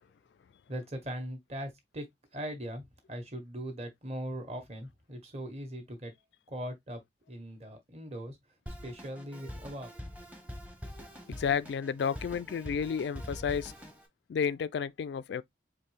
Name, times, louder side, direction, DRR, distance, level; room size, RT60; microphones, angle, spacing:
voice 1, 0.7-2.0 2.3-6.1 6.5-7.0 7.3-8.4 8.8-9.9, equal, 35° right, 1.5 m, -40 dB
Drum kit, 8.7-14.1, equal, 10° right, 0.9 m, -44 dB
voice 2, 11.3-13.7 14.3-15.4, left 7 dB, 70° left, 0.3 m, -31 dB
4.5 x 3.0 x 3.3 m
head